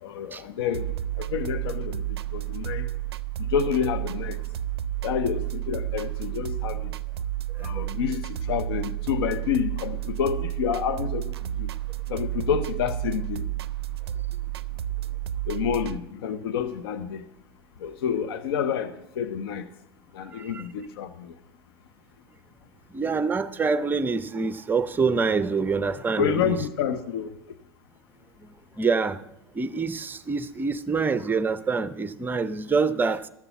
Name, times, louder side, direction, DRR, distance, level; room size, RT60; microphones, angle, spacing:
voice 1, 0.0-2.9 3.4-4.4 5.0-6.9 7.6-11.7 12.1-13.5 15.5-17.2 17.8-19.7 20.1-21.3 26.2-27.4, left 8 dB, 65° left, 0.7 m, -29 dB
sound 1, 0.7-16.0, right 13 dB, 75° right, 0.4 m, -31 dB
voice 2, 7.5-7.9 20.3-20.6 22.9-26.5 28.4-28.5 28.8-29.2 29.5-33.3, right 4 dB, 15° right, 0.6 m, -26 dB
13.0 x 6.9 x 6.9 m
hypercardioid pair, 90°, 13 cm